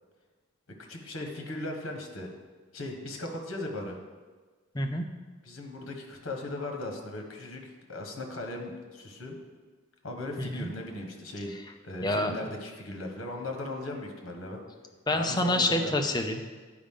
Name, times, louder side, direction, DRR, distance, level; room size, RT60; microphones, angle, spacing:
voice 1, 0.9-2.3 2.7-4.0 5.4-9.4 10.0-11.5 11.8-14.6 15.1-15.9, left 2 dB, 75° left, 3 dB, 1.3 m, -38 dB
voice 2, 4.7-5.1 10.4-10.7 12.0-12.3 15.1-16.4, left 1 dB, 20° left, 5 dB, 0.5 m, -27 dB
10.5 x 5.0 x 3.7 m, 1.4 s
head